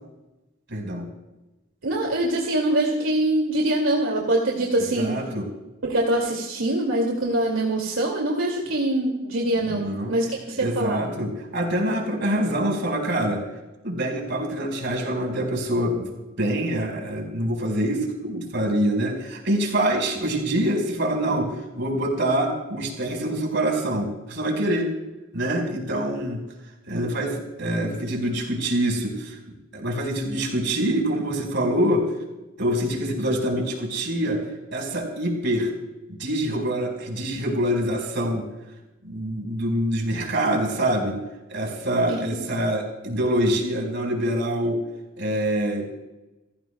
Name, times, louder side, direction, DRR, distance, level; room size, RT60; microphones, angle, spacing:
voice 1, 0.7-1.1 5.0-5.5 9.7-10.1 10.6-13.4 13.8-16.1 16.4-24.9 25.3-26.4 26.9-29.4 29.7-32.0 32.6-34.4 34.7-35.7 36.1-38.4 39.0-41.2 41.5-44.8 45.2-45.9, right 1 dB, 60° right, 1 dB, 4.9 m, -25 dB
voice 2, 1.8-5.2 5.8-11.0 42.1-42.2, right 1 dB, 85° right, -1 dB, 2.4 m, -24 dB
29.5 x 15.5 x 2.3 m, 1.0 s
head